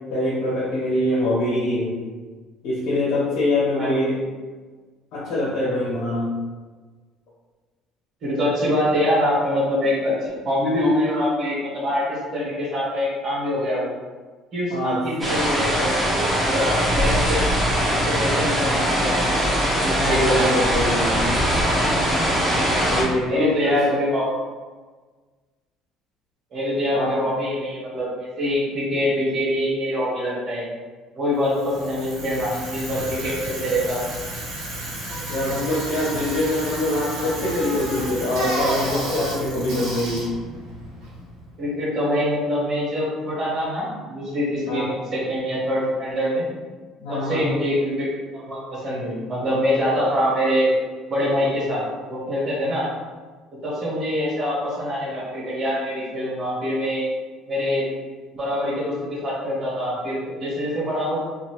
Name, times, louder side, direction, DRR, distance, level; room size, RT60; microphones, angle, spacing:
voice 1, 0.1-1.9 2.6-4.2 5.1-6.3 14.7-15.0 20.0-21.1 21.4-21.5 22.9-24.0 26.9-27.1 35.3-40.2 44.7-44.9 47.0-47.4, left 1 dB, 65° left, -8 dB, 1.3 m, -24 dB
voice 2, 8.2-13.9 14.5-17.4 17.8-19.2 19.7-20.5 23.2-24.3 26.5-30.6 31.1-34.0 41.6-46.5 47.1-48.1 48.3-50.7 51.1-51.8 52.1-52.9 53.6-57.1 57.5-57.9 58.3-61.2, left 1 dB, 35° right, -7 dB, 1.4 m, -24 dB
sound 1, 15.2-23.0, equal, 5° right, 0.8 m, -21 dB
Bicycle, 31.4-41.5, right 1 dB, 90° right, 1.1 m, -31 dB
2.9 x 2.5 x 3.0 m, 1.4 s
cardioid pair, 160°, 0 cm